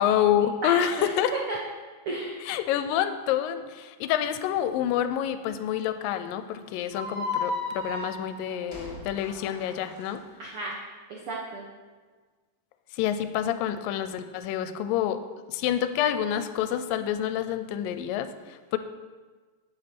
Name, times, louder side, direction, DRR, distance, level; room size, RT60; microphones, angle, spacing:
voice 1, 0.0-1.3 2.5-10.2 12.9-15.2 15.5-18.8, left 10 dB, 80° left, 11 dB, 2.2 m, -27 dB
voice 2, 0.6-1.6 2.0-2.4 10.4-10.8 11.1-11.6, right 3 dB, 80° right, -2 dB, 1.2 m, -33 dB
sound 1, 6.9-10.1, left 3 dB, 5° left, 1.3 m, -34 dB
8.6 x 7.8 x 5.8 m, 1.4 s
omnidirectional pair, 4.1 m